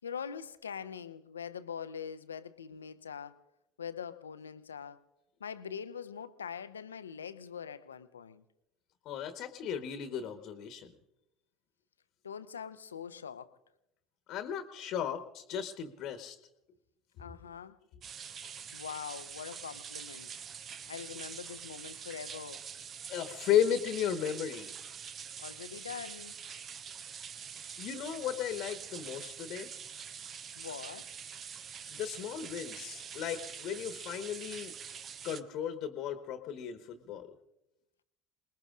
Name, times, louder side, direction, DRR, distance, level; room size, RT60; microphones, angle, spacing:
voice 1, 0.0-3.4 3.8-5.1 5.4-8.4 12.2-13.6 17.2-17.8 18.7-20.3 20.9-22.7 25.4-26.4 30.6-31.1, left 7 dB, 80° left, 0.7 m, -43 dB
voice 2, 9.0-10.9 14.3-16.4 23.1-24.7 27.8-29.7 31.9-34.7 35.2-37.3, left 9 dB, 55° left, 1.2 m, -35 dB
sound 1, 18.0-35.4, right 7 dB, 40° right, 0.8 m, -45 dB
28.0 x 20.5 x 2.5 m
figure-of-eight pair, 65°, 0 cm